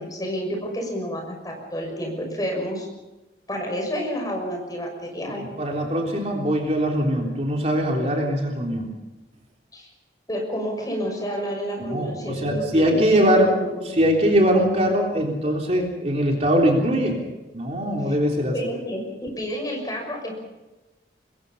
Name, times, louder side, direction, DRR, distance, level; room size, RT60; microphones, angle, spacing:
voice 1, 0.0-2.9 3.5-5.4 9.7-9.9 10.3-14.0 18.1-18.2 18.5-20.4, equal, 20° left, 2 dB, 6.4 m, -30 dB
voice 2, 5.3-8.9 11.8-13.6 13.9-17.2 17.5-18.5, equal, 35° right, 0 dB, 3.6 m, -21 dB
26.0 x 22.5 x 5.6 m, 1.1 s
head